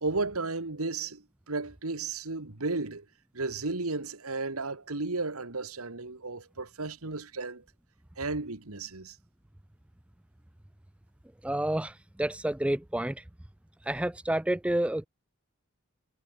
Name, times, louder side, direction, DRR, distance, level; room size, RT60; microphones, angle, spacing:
voice 1, 0.0-3.1 3.3-7.6 8.2-9.2, right 3 dB, 90° right, 2.0 m, -34 dB
voice 2, 11.4-13.2 13.8-15.1, right 1 dB, 5° right, 0.3 m, -29 dB
head